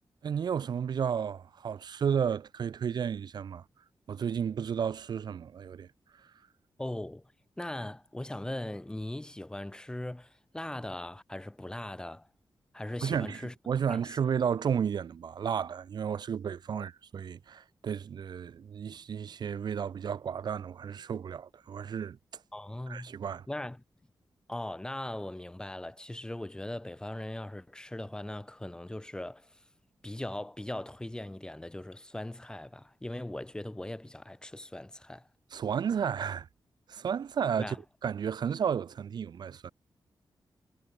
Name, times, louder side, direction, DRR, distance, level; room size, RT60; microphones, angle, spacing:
voice 1, 0.2-3.6 4.1-5.9 13.0-22.2 22.9-23.5 35.5-36.5 36.9-37.8 38.0-39.7, right 7 dB, 60° right, 0.5 m, -32 dB
voice 2, 6.8-7.3 7.6-12.3 12.7-13.5 13.9-14.1 16.7-16.9 22.5-23.1 23.5-23.8 24.5-29.6 30.0-35.3 37.6-37.8, left 1 dB, 10° left, 1.6 m, -39 dB
wide cardioid pair, 175°, 8 cm